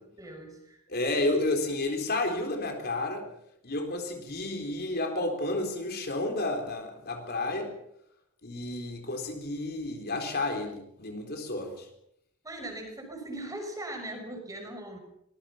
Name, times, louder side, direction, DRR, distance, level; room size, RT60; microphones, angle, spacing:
voice 1, 0.0-0.8 12.4-15.0, right 1 dB, 15° right, 3 dB, 6.0 m, -40 dB
voice 2, 0.9-3.2 3.6-7.7 8.4-11.9, left 2 dB, 45° left, 4 dB, 4.0 m, -31 dB
24.0 x 21.5 x 5.8 m, 0.76 s
head